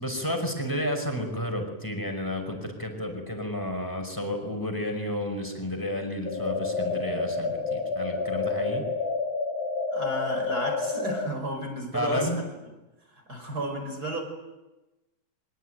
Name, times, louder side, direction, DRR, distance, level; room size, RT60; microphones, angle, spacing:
voice 1, 0.0-8.8 11.9-12.4, left 1 dB, 5° left, 4 dB, 5.3 m, -31 dB
sound 1, 6.3-11.3, left 4 dB, 60° left, 3.6 m, -29 dB
voice 2, 9.9-12.5 13.3-14.2, right 1 dB, 25° right, 5 dB, 5.6 m, -32 dB
24.5 x 23.5 x 9.2 m, 1.1 s
omnidirectional pair, 4.1 m